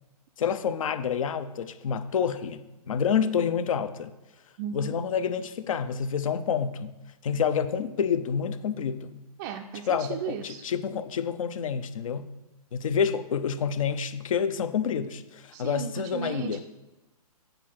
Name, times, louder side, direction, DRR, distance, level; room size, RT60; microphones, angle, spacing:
voice 1, 0.4-4.1 4.7-6.9 7.2-9.2 9.9-12.3 12.7-16.6, left 7 dB, 60° left, 13 dB, 0.6 m, -28 dB
voice 2, 4.6-4.9 9.4-10.6 15.5-16.6, right 7 dB, 25° right, 4 dB, 0.4 m, -35 dB
8.3 x 3.8 x 5.9 m, 1.0 s
hypercardioid pair, 135°, 20 cm